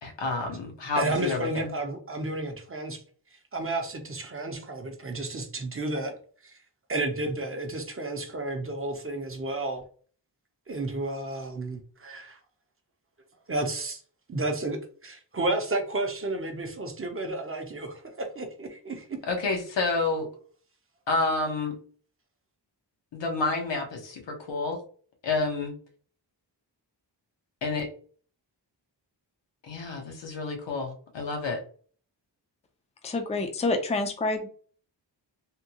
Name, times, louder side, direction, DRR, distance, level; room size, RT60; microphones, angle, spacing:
voice 1, 0.0-1.7 19.3-20.3 21.1-21.7 23.1-24.8 25.2-25.7 27.6-27.9 29.6-31.6, left 3 dB, 85° left, 3 dB, 1.1 m, -29 dB
voice 2, 1.0-3.0 3.5-6.2 6.4-6.6 6.9-9.8 10.7-12.4 13.5-14.0 14.3-19.1, right 2 dB, 30° right, 3 dB, 0.6 m, -32 dB
voice 3, 33.0-34.5, left 2 dB, 15° left, 6 dB, 0.4 m, -27 dB
3.5 x 2.3 x 2.8 m, 0.43 s
wide cardioid pair, 135°, 43 cm